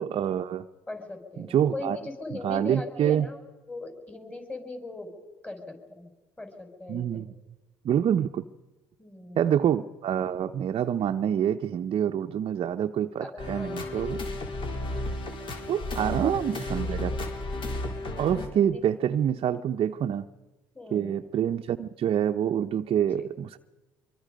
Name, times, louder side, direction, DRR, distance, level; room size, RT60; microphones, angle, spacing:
voice 1, 0.0-0.7 1.4-2.0 2.3-3.3 6.9-7.3 7.8-8.4 9.4-14.2 15.7-17.1 18.2-20.2 20.9-23.6, right 9 dB, 50° right, 6 dB, 0.8 m, -26 dB
voice 2, 0.9-3.4 3.7-5.1 5.4-6.1 6.4-7.3 9.0-9.6 13.2-14.3 16.0-17.1 17.6-18.0 18.7-18.8 20.7-21.3, left 2 dB, 10° left, 4 dB, 5.6 m, -40 dB
sound 1, 13.4-18.5, left 2 dB, 45° left, 4.2 m, -33 dB
24.5 x 24.0 x 5.3 m, 1.2 s
hypercardioid pair, 65°, 11 cm